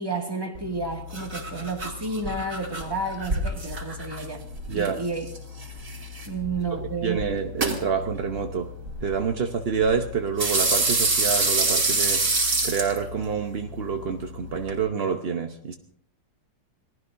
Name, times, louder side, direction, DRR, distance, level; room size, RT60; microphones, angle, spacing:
voice 1, 0.0-5.3 6.3-7.2, right 3 dB, 10° right, 1.9 m, -31 dB
sound 1, 0.5-14.8, right 2 dB, 45° right, 3.1 m, -28 dB
voice 2, 4.7-5.0 6.8-8.7 9.0-12.2 12.6-15.8, right 6 dB, 60° right, 0.6 m, -27 dB
27.5 x 19.0 x 2.6 m
omnidirectional pair, 2.2 m